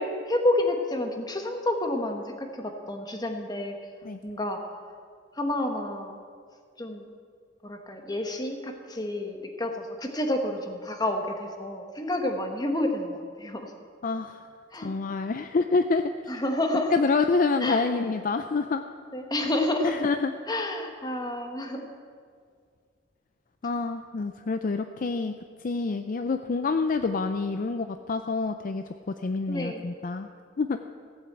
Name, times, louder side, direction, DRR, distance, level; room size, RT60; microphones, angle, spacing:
voice 1, 0.0-3.8 4.2-4.7 5.3-6.2 6.8-7.1 7.6-13.7 14.7-14.9 16.3-17.0 17.6-17.9 19.1-20.0 20.5-21.9 29.5-29.8, left 1 dB, 20° left, 4 dB, 1.3 m, -29 dB
voice 2, 14.0-14.4 14.8-16.1 16.9-18.8 19.8-20.3 23.6-25.3 25.6-28.8 29.2-30.3 30.6-30.8, left 4 dB, 45° left, 8 dB, 0.4 m, -27 dB
15.5 x 8.1 x 8.0 m, 2.1 s
head